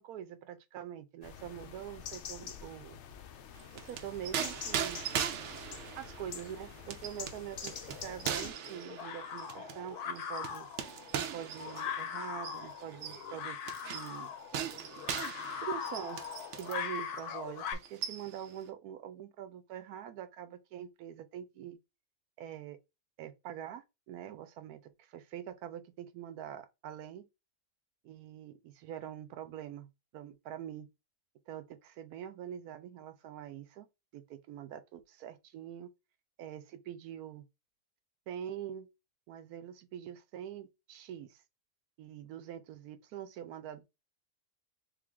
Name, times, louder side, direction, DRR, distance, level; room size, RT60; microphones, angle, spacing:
voice 1, 0.0-3.0 3.7-5.0 5.9-10.7 11.1-14.3 15.6-16.2 16.5-21.8 22.4-22.8 23.2-27.3 28.0-29.9 30.1-30.9 31.5-33.9 34.1-35.9 36.4-37.4 38.3-38.9 39.3-41.4 42.0-43.8, right 10 dB, 80° right, 1.1 m, -44 dB
sound 1, 1.2-8.5, left 8 dB, 65° left, 0.7 m, -46 dB
sound 2, 3.6-16.9 17.2-17.3 17.7-18.5, right 8 dB, 65° right, 0.8 m, -40 dB
sound 3, 7.9-17.7, left 7 dB, 85° left, 1.2 m, -41 dB
3.4 x 3.4 x 3.6 m
omnidirectional pair, 1.6 m